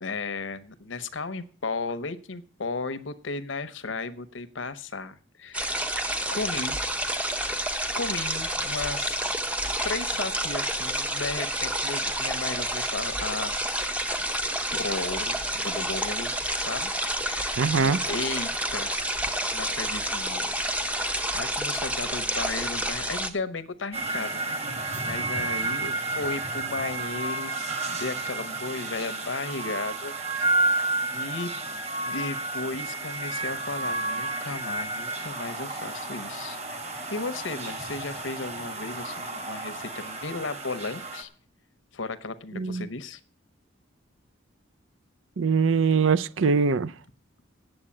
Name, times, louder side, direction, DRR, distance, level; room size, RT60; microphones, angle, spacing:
voice 1, 0.0-5.8 6.3-6.8 8.0-9.3 9.8-13.9 14.5-16.9 17.2-19.1 19.5-24.7 25.0-30.5 31.1-31.5 32.0-36.6 36.8-41.3 41.9-43.2, left 3 dB, 75° left, 0.9 m, -35 dB
sound 1, 5.5-23.3, right 1 dB, 5° right, 0.7 m, -29 dB
voice 2, 17.6-18.0 42.5-42.9 45.4-46.9, right 5 dB, 80° right, 0.5 m, -22 dB
sound 2, 23.9-41.2, right 3 dB, 35° right, 1.7 m, -31 dB
8.9 x 7.7 x 8.5 m
head